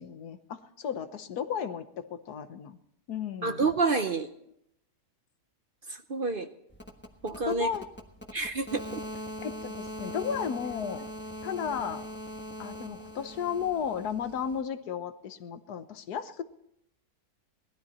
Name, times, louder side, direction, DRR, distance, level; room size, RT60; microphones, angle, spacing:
voice 1, 0.0-2.8 3.1-3.7 7.5-7.8 9.4-11.1 11.4-12.1 12.6-16.4, left 7 dB, 80° left, 10 dB, 1.5 m, -34 dB
voice 2, 3.4-4.3 5.9-6.5 7.2-7.7 8.3-9.0, right 4 dB, 45° right, 8 dB, 0.7 m, -28 dB
sound 1, 6.7-14.6, equal, 10° left, 1.1 m, -41 dB
19.0 x 12.5 x 4.3 m, 0.75 s
omnidirectional pair, 1.7 m